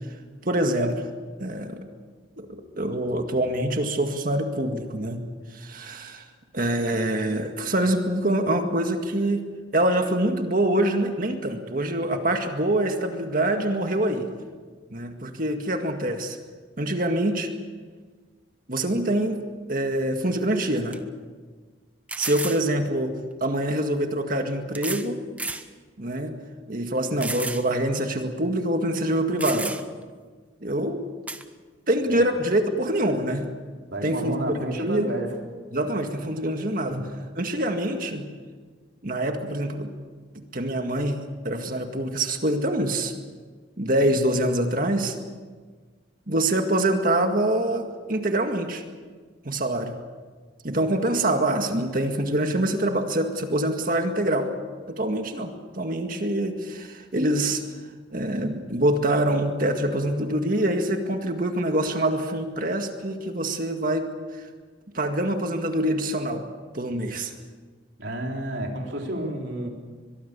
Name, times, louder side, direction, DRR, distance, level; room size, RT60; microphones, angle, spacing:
voice 1, 0.4-1.1 1.4-1.8 2.4-5.2 5.5-6.3 6.5-9.4 9.7-14.3 14.9-16.4 16.8-17.5 18.7-19.4 19.7-21.0 22.2-23.1 23.4-25.2 26.0-26.3 26.7-29.7 30.6-31.0 31.9-33.5 34.0-35.1 35.7-37.0 37.4-38.3 39.0-39.9 40.4-43.1 43.8-45.2 46.3-48.8 49.4-50.0 50.6-54.5 54.9-57.6 58.1-64.1 64.3-64.4 64.9-66.4 66.7-67.3, right 1 dB, 45° right, 5 dB, 1.9 m, -25 dB
sound 1, 20.3-20.4 20.9-21.0 22.1-22.6 23.8-23.9 24.7-25.1 25.4-25.7 26.2-26.3 27.2-27.7 28.0-28.1 29.0-29.1 29.4-30.0 31.3-31.4, right 2 dB, 10° right, 1.0 m, -32 dB
voice 2, 33.9-35.3 36.9-37.0 68.0-69.7, right 1 dB, 65° right, 1 dB, 4.0 m, -31 dB
23.5 x 22.5 x 7.0 m, 1.5 s
head